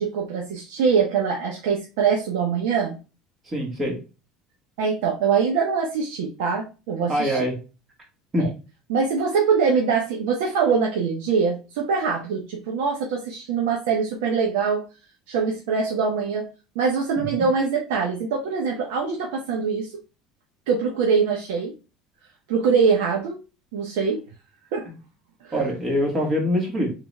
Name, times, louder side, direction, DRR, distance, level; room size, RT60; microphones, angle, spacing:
voice 1, 0.0-3.0 4.8-7.4 8.4-8.5 8.9-14.8 15.3-16.5 16.7-19.9 20.7-21.7 22.5-23.4 23.7-24.2 24.7-24.9 25.4-25.7, right 5 dB, 90° right, -1 dB, 1.1 m, -23 dB
voice 2, 3.5-4.0 7.1-7.6 8.3-8.5 17.2-17.5 24.9-25.0 25.5-26.9, equal, 20° right, 1 dB, 1.9 m, -24 dB
3.8 x 3.7 x 3.2 m, 0.31 s
cardioid pair, 145°, 0 cm